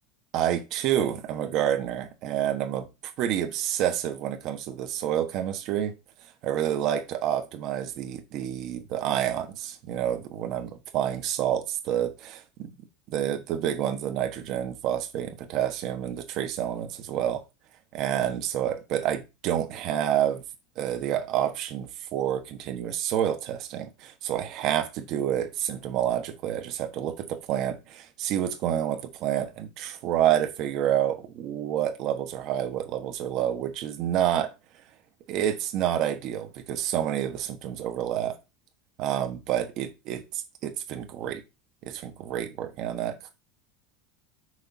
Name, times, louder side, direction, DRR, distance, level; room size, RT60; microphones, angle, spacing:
voice 1, 0.3-2.9 3.2-5.9 6.4-12.7 13.1-17.4 17.9-20.4 20.8-34.5 35.3-38.4 39.0-41.4 41.8-43.2, right 10 dB, 35° right, 1.2 m, -28 dB
6.3 x 4.5 x 5.5 m
supercardioid pair, 180°, 0 cm